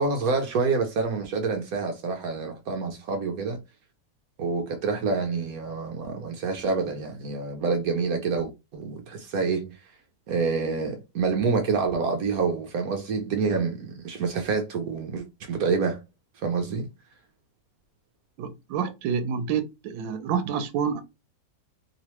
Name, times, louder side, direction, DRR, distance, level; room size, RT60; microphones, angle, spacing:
voice 1, 0.0-3.6 4.4-9.8 10.3-16.0 16.4-16.9, right 4 dB, 65° right, 1.0 m, -27 dB
voice 2, 18.4-21.0, right 7 dB, 90° right, 1.4 m, -28 dB
3.0 x 3.0 x 2.9 m
omnidirectional pair, 2.0 m